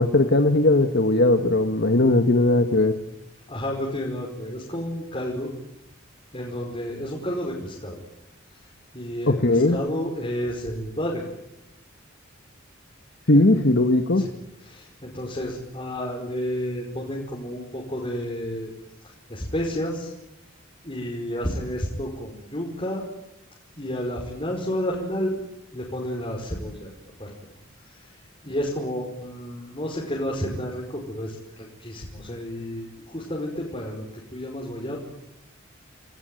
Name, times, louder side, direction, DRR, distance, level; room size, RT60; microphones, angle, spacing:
voice 1, 0.0-2.9 9.3-9.8 13.3-14.2, left 2 dB, 55° left, 6 dB, 1.6 m, -18 dB
voice 2, 3.5-5.5 6.3-8.0 8.5-11.2 13.3-13.6 14.2-14.3 14.6-18.7 19.0-20.1 20.8-23.0 23.8-25.4 25.7-26.9 27.2-27.3 27.8-35.0, equal, 25° left, -2 dB, 5.3 m, -31 dB
29.5 x 20.0 x 9.3 m, 0.86 s
head